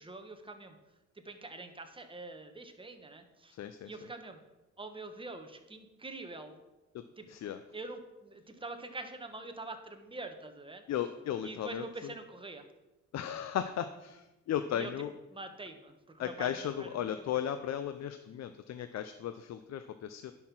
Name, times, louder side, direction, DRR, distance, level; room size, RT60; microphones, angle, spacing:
voice 1, 0.0-3.6 3.8-4.4 4.8-6.6 7.2-7.3 7.7-10.8 11.4-12.7 14.7-14.9 15.3-17.2, right 2 dB, 15° right, 6 dB, 1.3 m, -45 dB
voice 2, 3.5-3.9 6.9-7.0 7.3-7.6 10.9-11.8 13.1-15.1 16.2-20.3, left 10 dB, 60° left, 10 dB, 0.6 m, -36 dB
10.5 x 5.8 x 6.1 m, 1.1 s
cardioid pair, 90°, 30 cm